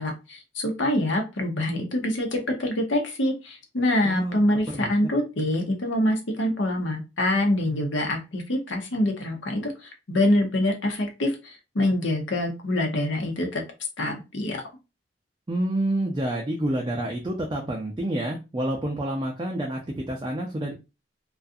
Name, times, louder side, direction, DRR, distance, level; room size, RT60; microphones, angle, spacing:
voice 1, 0.0-13.6 14.0-14.6, left 1 dB, 75° left, 3 dB, 0.8 m, -25 dB
voice 2, 4.0-4.4 4.7-4.9 15.5-20.7, right 1 dB, 25° right, 0 dB, 0.4 m, -28 dB
2.4 x 2.3 x 2.5 m, 0.27 s
head